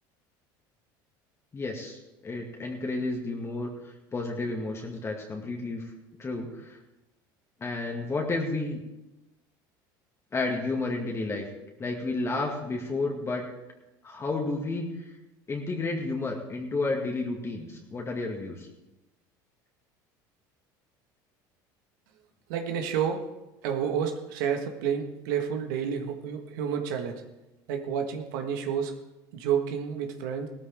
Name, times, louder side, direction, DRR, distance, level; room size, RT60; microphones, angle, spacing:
voice 1, 1.5-5.9 6.2-6.8 7.6-8.8 10.3-11.5 11.8-13.5 14.0-14.9 15.5-18.7, left 3 dB, 25° left, 0 dB, 2.0 m, -31 dB
voice 2, 22.5-23.3 23.6-27.2 27.7-28.9 29.3-30.5, right 8 dB, 80° right, 5 dB, 1.5 m, -30 dB
16.5 x 13.5 x 3.6 m, 1.0 s
supercardioid pair, 100°, 10 cm